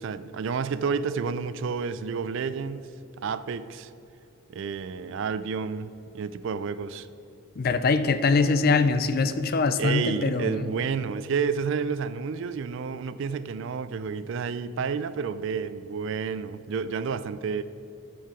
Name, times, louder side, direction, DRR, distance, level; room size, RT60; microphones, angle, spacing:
voice 1, 0.0-3.9 4.5-7.1 9.8-17.6, right 5 dB, 55° right, 0.3 m, -30 dB
voice 2, 7.6-10.7, left 4 dB, 45° left, 0.4 m, -23 dB
14.0 x 4.7 x 4.8 m
head